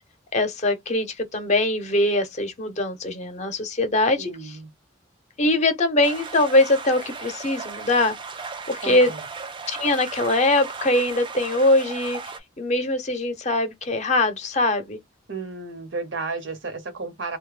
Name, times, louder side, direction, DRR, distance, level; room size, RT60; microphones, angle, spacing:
voice 1, 0.3-4.5 5.4-8.1 8.7-9.1 9.7-12.2 12.6-15.0, left 2 dB, 35° left, 0.6 m, -22 dB
voice 2, 4.2-4.7 8.8-9.2 15.3-17.4, right 3 dB, 75° right, 0.9 m, -33 dB
sound 1, 6.0-12.4, right 4 dB, 25° right, 0.3 m, -36 dB
2.3 x 2.0 x 3.1 m
head